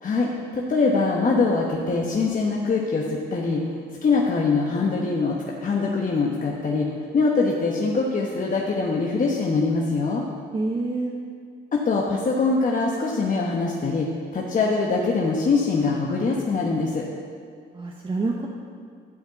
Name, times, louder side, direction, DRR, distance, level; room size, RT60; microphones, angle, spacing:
voice 1, 0.0-3.6 4.0-6.9 7.1-10.2 11.7-14.1 14.3-17.0, left 4 dB, 40° left, -2 dB, 1.1 m, -23 dB
voice 2, 10.5-11.1 17.7-18.5, right 2 dB, 25° right, 0 dB, 0.9 m, -27 dB
11.5 x 4.4 x 8.1 m, 2.1 s
cardioid pair, 90°, 20 cm